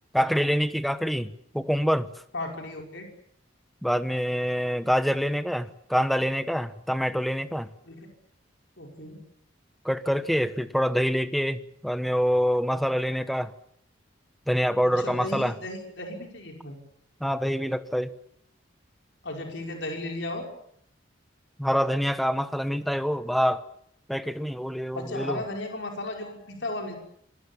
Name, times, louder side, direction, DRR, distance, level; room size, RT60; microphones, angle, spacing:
voice 1, 0.1-1.3 1.5-2.1 3.8-7.7 9.8-13.5 14.5-15.5 17.2-18.1 21.6-23.6 24.1-25.4, equal, ahead, 1.1 m, -26 dB
voice 2, 2.3-3.1 7.9-8.0 8.8-9.2 14.8-16.7 19.2-20.5 24.9-26.9, left 2 dB, 65° left, 5.5 m, -35 dB
26.5 x 23.0 x 7.2 m
head